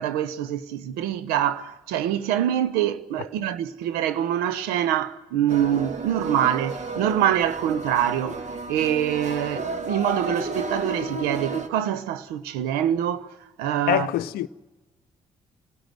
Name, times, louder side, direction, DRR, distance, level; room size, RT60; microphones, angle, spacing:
voice 1, 0.0-13.3 13.6-14.1, right 10 dB, 80° right, 0.9 m, -25 dB
sound 1, 5.5-11.7, right 3 dB, 45° right, 2.1 m, -32 dB
voice 2, 13.9-14.5, left 14 dB, 70° left, 0.7 m, -24 dB
26.5 x 16.5 x 7.7 m
hypercardioid pair, 45°, 16 cm